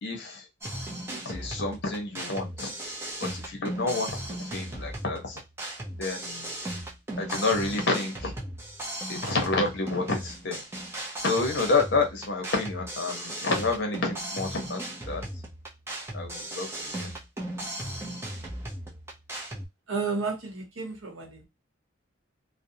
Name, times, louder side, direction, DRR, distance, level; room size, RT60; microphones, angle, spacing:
voice 1, 0.0-0.5 1.1-2.7 3.2-5.4 6.0-6.5 7.2-8.3 9.1-10.6 11.2-14.8 15.1-15.2 16.1-17.1, left 3 dB, 55° left, 0.8 m, -29 dB
sound 1, 0.6-19.7, right 1 dB, 10° right, 0.6 m, -37 dB
voice 2, 19.9-21.5, right 4 dB, 80° right, 0.9 m, -32 dB
2.5 x 2.1 x 2.6 m
head